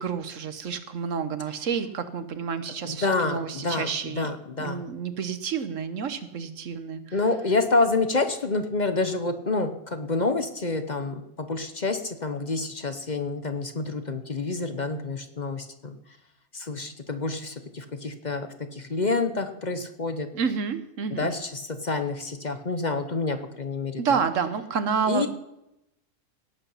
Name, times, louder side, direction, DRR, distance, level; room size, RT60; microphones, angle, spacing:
voice 1, 0.0-4.3 4.6-7.2 20.3-21.3 24.0-25.3, right 6 dB, 60° right, 11 dB, 1.3 m, -29 dB
voice 2, 2.8-4.8 7.1-16.0 16.5-20.3 21.2-24.2 25.1-25.3, left 3 dB, 35° left, 8 dB, 0.9 m, -28 dB
17.5 x 8.7 x 5.6 m, 0.86 s
omnidirectional pair, 1.5 m